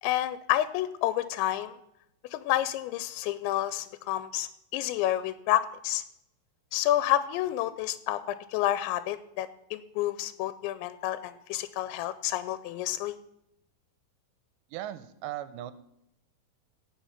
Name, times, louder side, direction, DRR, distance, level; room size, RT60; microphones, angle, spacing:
voice 1, 0.0-1.7 2.3-6.0 6.7-13.2, left 13 dB, 85° left, 14 dB, 2.8 m, -29 dB
voice 2, 14.7-15.7, right 13 dB, 85° right, 13 dB, 2.8 m, -37 dB
17.0 x 6.0 x 5.7 m, 0.81 s
omnidirectional pair, 5.1 m